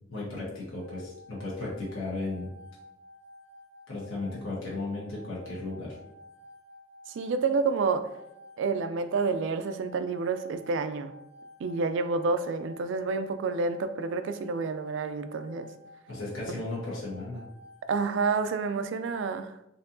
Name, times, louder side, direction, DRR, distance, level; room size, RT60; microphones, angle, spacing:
voice 1, 0.1-2.5 3.9-6.0 16.1-17.4, left 2 dB, 75° left, -6 dB, 1.2 m, -35 dB
sound 1, 0.8-18.9, left 1 dB, 10° left, 0.7 m, -52 dB
voice 2, 7.1-8.1 8.6-11.1 11.6-15.7 16.5-16.6 17.9-19.6, right 4 dB, 65° right, 10 dB, 0.3 m, -29 dB
4.3 x 2.7 x 2.6 m, 0.82 s
head